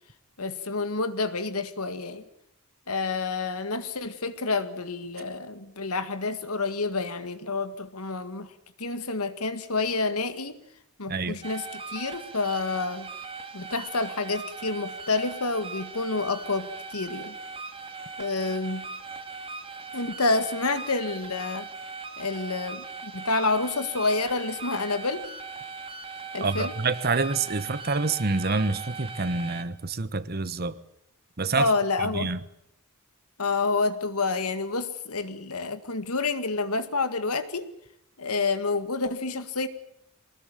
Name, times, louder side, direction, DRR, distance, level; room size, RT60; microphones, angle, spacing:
voice 1, 0.4-2.2 2.9-8.5 8.8-10.6 11.0-13.1 13.5-17.4 18.2-18.8 19.9-21.7 22.2-25.3 26.3-26.7 31.5-32.3 33.4-37.7 38.2-39.7, left 3 dB, 85° left, 2.0 m, -28 dB
sound 1, 11.4-29.6, right 4 dB, 25° right, 2.4 m, -39 dB
voice 2, 26.4-30.8 31.4-31.7 32.0-32.4, right 3 dB, 45° right, 1.2 m, -27 dB
24.0 x 19.5 x 9.1 m
head